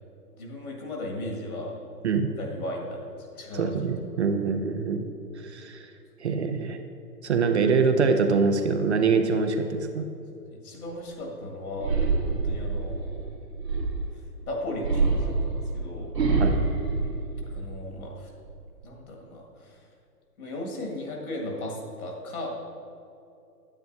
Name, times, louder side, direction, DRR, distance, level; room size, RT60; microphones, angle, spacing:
voice 1, 0.4-1.8 2.4-3.7 10.4-12.0 12.3-13.4 14.5-16.2 17.4-18.3 18.8-19.9 20.4-22.5, left 1 dB, 60° left, 0 dB, 1.9 m, -36 dB
voice 2, 3.5-5.0 5.4-5.8 6.2-6.8 7.2-10.1 16.4-16.5, right 5 dB, 45° right, 7 dB, 0.5 m, -24 dB
sound 1, 11.8-14.2 14.8-17.9 18.3-18.8, right 4 dB, 80° right, 1.9 m, -26 dB
9.5 x 8.8 x 2.6 m, 2.7 s
figure-of-eight pair, 125°, 49 cm